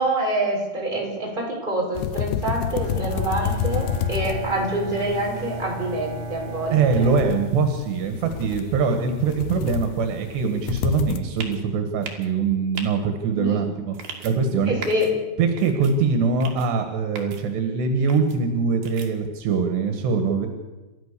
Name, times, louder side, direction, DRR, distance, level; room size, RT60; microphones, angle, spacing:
voice 1, 0.0-7.1 13.4-13.7 14.7-15.1, right 1 dB, 10° right, -2 dB, 5.3 m, -26 dB
sound 1, 2.0-11.2, left 9 dB, 85° left, 3.1 m, -30 dB
Bowed string instrument, 2.8-8.3, right 3 dB, 50° right, 0.7 m, -35 dB
voice 2, 6.7-14.0 14.2-14.7 15.4-20.5, right 5 dB, 80° right, 6 dB, 3.9 m, -23 dB
sound 2, 11.4-11.6 12.0-12.3 12.8-12.9 13.9-14.3 14.8-15.1 15.6-15.9 16.4-16.7 17.2-17.4 18.1-18.4 18.8-19.1, right 6 dB, 65° right, 4.2 m, -36 dB
30.0 x 14.0 x 6.9 m, 1.2 s
omnidirectional pair, 4.8 m